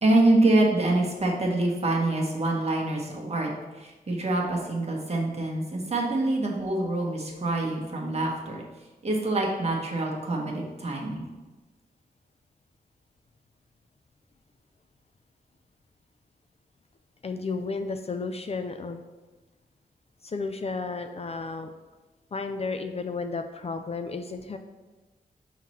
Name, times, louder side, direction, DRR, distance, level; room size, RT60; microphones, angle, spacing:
voice 1, 0.0-8.6 9.0-11.2, right 2 dB, 40° right, -2 dB, 1.2 m, -25 dB
voice 2, 17.2-19.0 20.2-21.7 22.3-24.6, left 4 dB, 40° left, 6 dB, 0.4 m, -33 dB
5.7 x 3.1 x 5.6 m, 1.2 s
wide cardioid pair, 105°, 16 cm